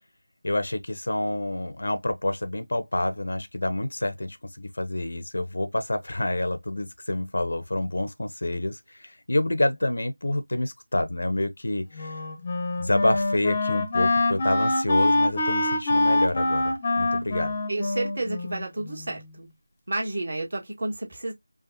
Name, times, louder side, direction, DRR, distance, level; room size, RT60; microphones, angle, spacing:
voice 1, 0.4-12.2 12.8-17.5, left 1 dB, 55° left, 0.7 m, -28 dB
Wind instrument woodwind instrument, 11.9-19.1, left 2 dB, 20° left, 0.8 m, -25 dB
voice 2, 17.7-19.5 19.9-21.3, right 2 dB, 40° right, 1.7 m, -31 dB
5.0 x 2.4 x 2.8 m
figure-of-eight pair, 165°, 0 cm